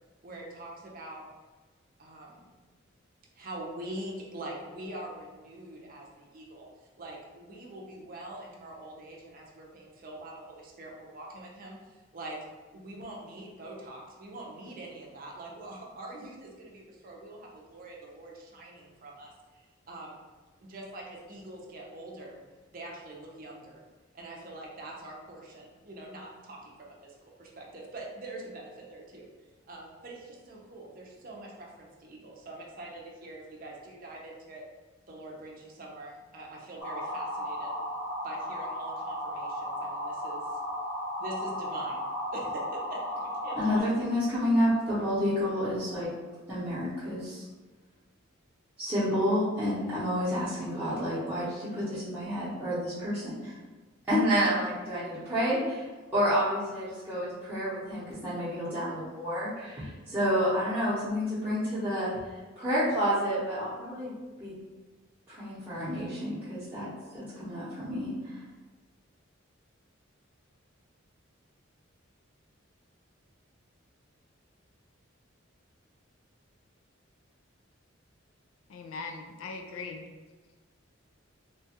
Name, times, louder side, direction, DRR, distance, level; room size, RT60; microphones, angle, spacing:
voice 1, 0.2-1.3 2.0-2.5 3.3-6.7 7.0-12.4 12.7-20.2 20.6-22.4 22.7-23.8 24.1-29.3 29.7-34.6 35.1-37.8 38.2-40.6 41.2-44.1, right 1 dB, 45° right, -2 dB, 0.5 m, -44 dB
sound 1, 36.8-43.8, equal, 60° left, 1.1 m, -35 dB
voice 2, 43.6-46.1 46.5-47.5 48.8-53.5 54.1-55.9 56.1-62.1 62.6-64.1 64.4-64.5 65.3-68.4, equal, 10° right, -14 dB, 0.8 m, -29 dB
voice 3, 78.7-80.1, left 4 dB, 75° left, 4 dB, 0.4 m, -40 dB
3.0 x 2.3 x 2.8 m, 1.3 s
head